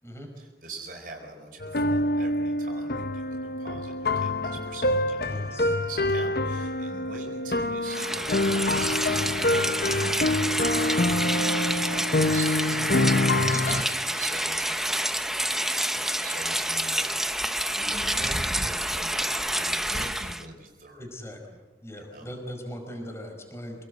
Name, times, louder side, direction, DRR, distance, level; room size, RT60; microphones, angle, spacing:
voice 1, 0.4-10.2 11.3-15.7 15.9-17.1 17.7-21.0 22.0-22.3, right 2 dB, 50° right, 1 dB, 4.6 m, -43 dB
sound 1, 1.6-13.8, left 2 dB, 55° left, 1.0 m, -26 dB
voice 2, 5.2-5.8 12.7-12.9 13.4-13.9 21.0-21.4 21.8-23.8, equal, 15° left, 3 dB, 4.8 m, -40 dB
Rain, 7.8-20.4, right 1 dB, ahead, 0.9 m, -28 dB
27.0 x 19.0 x 8.2 m, 1.3 s
head